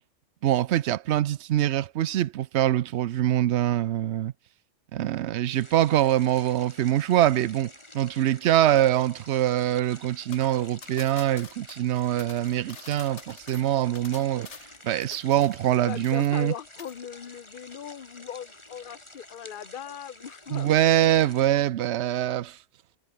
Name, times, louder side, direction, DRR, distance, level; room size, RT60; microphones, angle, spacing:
voice 1, 0.4-4.3 4.9-14.5 14.8-16.5 20.5-22.6, right 12 dB, 70° right, 0.9 m, -24 dB
sound 1, 5.5-21.5, left 1 dB, 25° left, 3.9 m, -49 dB
sound 2, 10.3-15.8 16.0-16.5 16.8-17.0, left 5 dB, 70° left, 2.0 m, -47 dB
voice 2, 15.8-20.7, left 9 dB, 45° left, 1.1 m, -39 dB
omnidirectional pair, 1.3 m